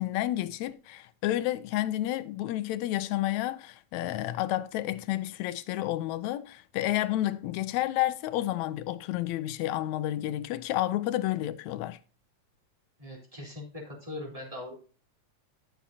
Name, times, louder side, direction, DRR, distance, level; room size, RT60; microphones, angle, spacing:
voice 1, 0.0-12.0, left 14 dB, 80° left, 1.8 m, -30 dB
voice 2, 13.0-14.8, left 2 dB, 10° right, 3.6 m, -41 dB
13.5 x 7.1 x 2.7 m
omnidirectional pair, 3.4 m